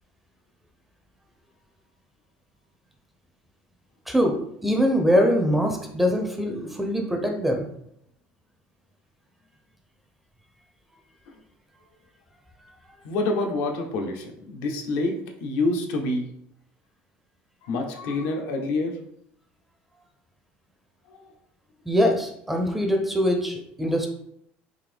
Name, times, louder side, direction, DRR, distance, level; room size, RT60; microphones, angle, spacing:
voice 1, 4.1-7.7 21.9-24.1, equal, 5° right, 3 dB, 0.5 m, -23 dB
voice 2, 13.0-16.3 17.6-19.0 21.1-21.2, left 2 dB, 75° left, 3 dB, 0.6 m, -27 dB
3.7 x 2.7 x 3.3 m, 0.72 s
cardioid pair, 145°, 4 cm